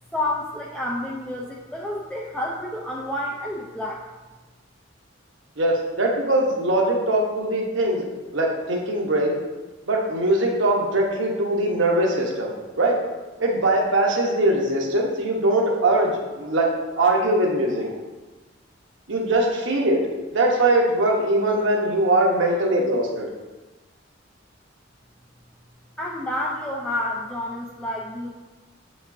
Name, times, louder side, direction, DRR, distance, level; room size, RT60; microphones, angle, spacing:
voice 1, 0.1-4.1 26.0-28.3, left 1 dB, 5° left, -4 dB, 0.5 m, -29 dB
voice 2, 5.6-9.4 9.9-13.0 13.4-18.0 19.1-20.0 20.3-23.3, right 1 dB, 75° right, 0 dB, 1.1 m, -21 dB
7.9 x 5.2 x 2.7 m, 1.2 s
head